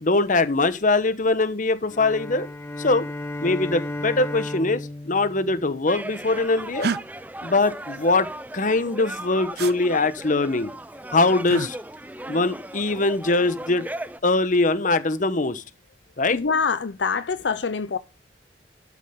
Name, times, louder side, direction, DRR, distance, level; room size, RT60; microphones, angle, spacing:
voice 1, 0.0-2.5 2.8-3.1 3.4-6.9 7.4-10.7 11.1-11.8 12.3-13.9 14.2-15.6 16.2-16.4, left 3 dB, 45° left, 1.1 m, -22 dB
sound 1, 1.9-6.3, left 1 dB, 15° left, 1.2 m, -34 dB
sound 2, 5.9-14.2, right 1 dB, 10° right, 0.5 m, -37 dB
sound 3, 6.8-7.0 9.6-9.7 11.4-11.7 13.5-13.9, right 5 dB, 60° right, 0.6 m, -28 dB
voice 2, 16.3-18.0, left 5 dB, 70° left, 0.6 m, -25 dB
12.5 x 7.3 x 3.7 m
head